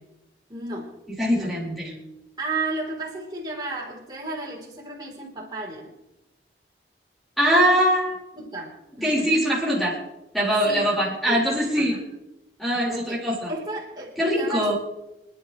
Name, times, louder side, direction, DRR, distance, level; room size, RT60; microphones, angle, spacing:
voice 1, 0.5-1.0 1.3-5.9 8.3-9.4 10.6-11.5 11.8-12.0 12.9-13.2 13.5-14.7, right 2 dB, 25° right, -4 dB, 3.6 m, -34 dB
voice 2, 1.2-1.9 7.4-8.2 9.0-10.0 10.3-12.0 12.6-13.5 14.2-14.8, equal, ahead, -6 dB, 4.6 m, -22 dB
27.5 x 10.5 x 3.2 m, 0.92 s
head